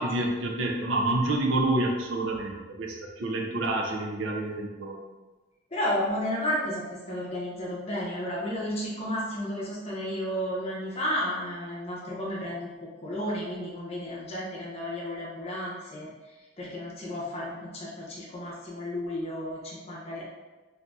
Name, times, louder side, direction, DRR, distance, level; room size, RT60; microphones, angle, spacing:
voice 1, 0.0-4.9, right 2 dB, 80° right, 0 dB, 0.5 m, -28 dB
voice 2, 5.7-12.7 13.0-20.2, equal, 30° left, -4 dB, 0.7 m, -32 dB
4.0 x 2.6 x 2.3 m, 1.2 s
head